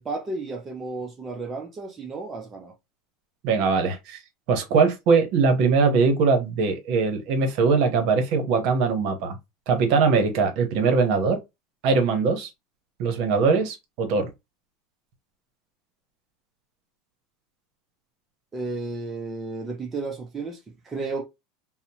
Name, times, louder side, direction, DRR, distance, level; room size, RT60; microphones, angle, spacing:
voice 1, 0.0-2.7 18.5-21.2, right 3 dB, 15° right, 0.4 m, -33 dB
voice 2, 3.4-4.2 4.5-9.4 9.7-11.4 11.8-12.5 13.0-14.3, right 4 dB, 55° right, 0.8 m, -21 dB
2.8 x 2.0 x 2.7 m
supercardioid pair, 155°, 0 cm